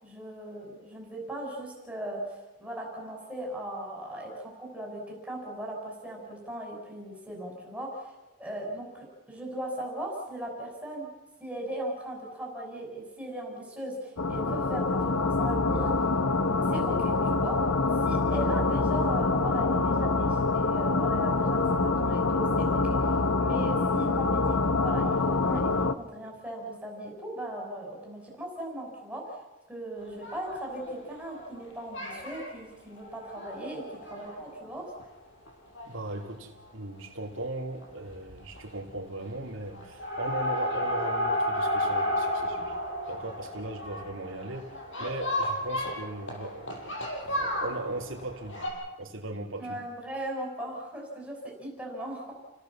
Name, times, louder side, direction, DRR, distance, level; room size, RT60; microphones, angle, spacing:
voice 1, 0.0-8.1 8.4-11.1 11.4-15.9 16.6-17.6 18.0-29.4 29.7-34.9 49.6-52.3, right 1 dB, 5° right, -1 dB, 5.4 m, -38 dB
sound 1, 14.2-25.9, left 3 dB, 80° left, 1.1 m, -26 dB
sound 2, 30.0-31.6 31.9-32.5 33.0-35.0 35.5-35.6 35.7-35.9 36.2-36.3 37.6-37.8 38.1-38.6 38.9-39.4 39.7-48.7, left 1 dB, 60° left, 6.2 m, -33 dB
voice 2, 35.8-42.8 43.1-47.0 47.2-48.7 49.0-49.8, right 2 dB, 65° right, 0 dB, 2.7 m, -38 dB
29.5 x 17.0 x 7.2 m, 1.1 s
head